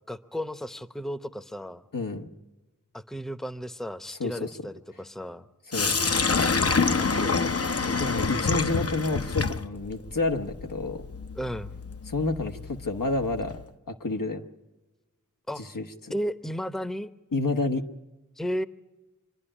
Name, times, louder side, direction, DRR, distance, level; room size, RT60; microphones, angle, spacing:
voice 1, 0.1-1.8 2.9-5.5 11.4-11.7 15.5-15.6 16.1-17.1 18.4-18.6, equal, ahead, 11 dB, 0.8 m, -34 dB
voice 2, 1.9-2.3 4.1-4.5 5.7-5.9 7.7-11.0 12.1-13.6 13.9-14.5 15.6-16.1 17.3-17.8, left 2 dB, 90° left, 5 dB, 1.2 m, -29 dB
Sink (filling or washing), 5.7-13.6, left 4 dB, 45° left, 0.7 m, -27 dB
26.0 x 11.0 x 10.0 m, 1.2 s
wide cardioid pair, 45°, 32 cm